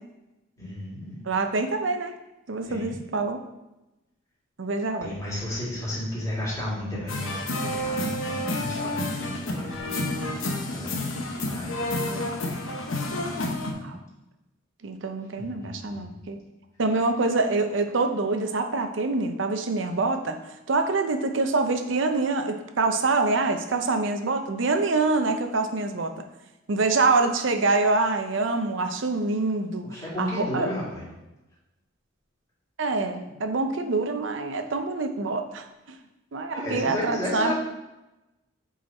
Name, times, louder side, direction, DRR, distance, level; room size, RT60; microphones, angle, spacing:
voice 1, 0.6-1.2 2.7-3.0 5.0-12.8 15.4-16.1 29.8-31.0 36.5-37.5, left 1 dB, 15° left, -8 dB, 2.4 m, -34 dB
voice 2, 1.3-2.1 2.5-3.4 4.6-5.2 11.7-12.3 13.8-14.0 14.8-16.4 16.8-26.1 26.7-30.7 32.8-36.0 36.3-37.5, right 3 dB, 65° right, 6 dB, 0.6 m, -26 dB
sound 1, 7.1-13.7, left 1 dB, 90° left, 1.0 m, -30 dB
7.6 x 4.0 x 4.2 m, 0.98 s
head